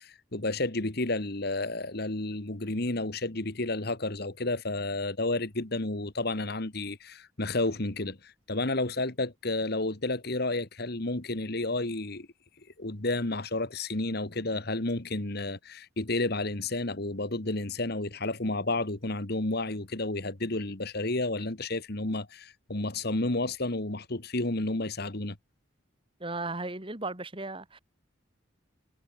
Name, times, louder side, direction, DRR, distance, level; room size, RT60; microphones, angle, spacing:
voice 1, 0.0-12.3 12.8-25.4, left 2 dB, 50° left, 1.8 m, -31 dB
voice 2, 26.2-27.8, right 2 dB, 25° right, 2.4 m, -36 dB
head